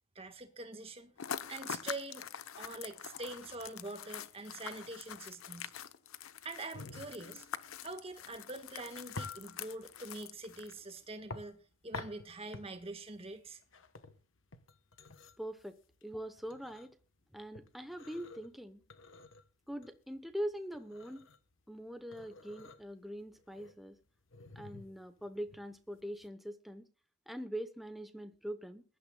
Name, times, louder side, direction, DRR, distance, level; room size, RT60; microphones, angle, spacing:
voice 1, 0.1-1.1 1.5-2.3 2.6-5.7 6.4-7.5 7.8-11.6 11.8-13.6, right 2 dB, 30° right, 1.5 m, -44 dB
sound 1, 1.2-10.9, left 8 dB, 85° left, 0.8 m, -45 dB
sound 2, 6.7-26.3, left 3 dB, 65° left, 1.1 m, -50 dB
voice 2, 15.4-17.0 17.3-18.8 19.7-21.3 21.7-24.0 24.5-26.9 27.3-28.8, equal, ahead, 0.8 m, -43 dB
21.5 x 12.0 x 2.3 m
head